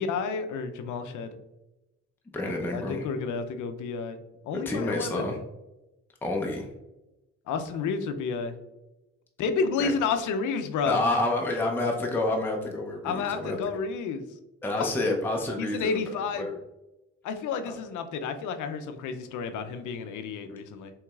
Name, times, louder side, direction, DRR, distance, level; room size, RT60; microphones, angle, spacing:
voice 1, 0.0-1.3 2.4-4.2 4.4-5.3 7.5-8.5 9.4-11.0 13.0-14.2 14.8-15.2 15.6-16.5 17.2-20.9, left 5 dB, 80° left, 8 dB, 0.5 m, -31 dB
voice 2, 2.3-3.1 4.7-5.4 6.2-6.7 9.8-9.9 10.8-13.6 14.6-16.0 16.4-16.6 17.7-17.8, left 2 dB, 5° left, 0 dB, 0.5 m, -28 dB
4.6 x 3.1 x 2.3 m, 1.0 s
cardioid pair, 75°, 30 cm